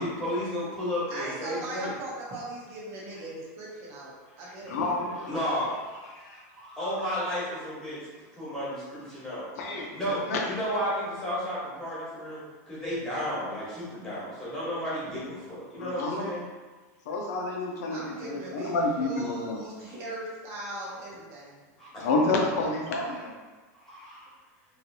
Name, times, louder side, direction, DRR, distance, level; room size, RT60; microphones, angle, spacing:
voice 1, 0.0-1.9 4.4-8.0 8.4-9.5 9.7-16.4 21.8-22.1 22.9-23.2 23.8-24.3, equal, 5° left, -10 dB, 1.2 m, -33 dB
voice 2, 1.1-4.8 5.3-5.5 17.9-18.7 19.0-21.6, right 1 dB, 30° right, -6 dB, 0.8 m, -39 dB
voice 3, 4.7-5.3 9.6-9.9 10.3-10.4 15.8-16.3 17.1-19.6 22.0-23.3, left 2 dB, 70° left, 0 dB, 0.7 m, -29 dB
3.2 x 2.7 x 2.7 m, 1.3 s
supercardioid pair, 165°, 9 cm